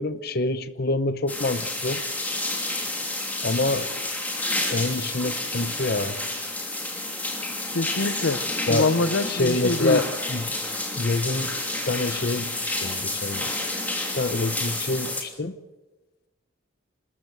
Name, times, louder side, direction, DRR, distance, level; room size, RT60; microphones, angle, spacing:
voice 1, 0.0-2.0 3.4-4.1 4.7-6.2 8.7-8.9 9.3-10.6 11.0-11.5 11.8-13.5 14.2-15.6, left 2 dB, 50° left, 12 dB, 0.8 m, -26 dB
sound 1, 1.3-15.2, left 2 dB, 10° left, 3.0 m, -30 dB
voice 2, 7.7-8.4 8.7-10.0, left 3 dB, 80° left, 15 dB, 0.9 m, -24 dB
26.0 x 14.0 x 7.9 m, 1.2 s
head